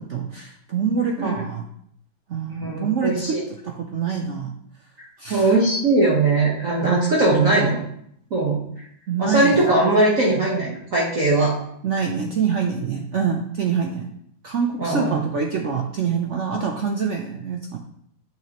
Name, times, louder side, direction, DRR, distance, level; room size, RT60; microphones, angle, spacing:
voice 1, 0.0-1.7 2.3-3.4 3.6-4.6 5.2-5.5 9.1-9.8 11.8-14.1 14.4-17.8, right 6 dB, 85° right, 2 dB, 0.6 m, -25 dB
voice 2, 2.5-3.4 5.3-7.8 8.3-8.6 9.2-11.5 14.8-15.2, right 2 dB, 50° right, -4 dB, 1.4 m, -20 dB
8.8 x 6.0 x 2.9 m, 0.71 s
omnidirectional pair, 2.1 m